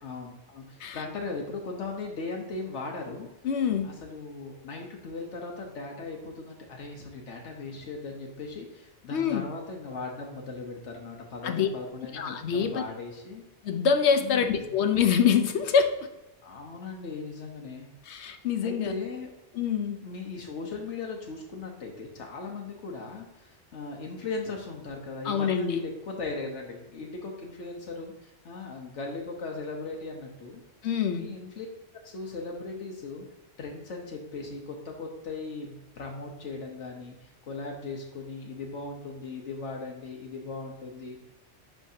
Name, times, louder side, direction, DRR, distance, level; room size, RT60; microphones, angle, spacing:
voice 1, 0.0-3.3 3.8-13.4 14.2-14.7 16.4-17.9 18.6-19.3 20.0-30.6 31.2-31.7 32.0-33.2 33.6-41.2, left 3 dB, 90° left, 0 dB, 1.2 m, -38 dB
voice 2, 3.4-4.0 9.1-9.5 11.4-11.7 12.1-12.8 13.6-16.1 18.1-18.9 19.5-20.0 25.2-25.8 30.8-31.3, left 7 dB, 75° left, 8 dB, 0.9 m, -25 dB
10.0 x 3.4 x 2.7 m, 0.98 s
omnidirectional pair, 1.2 m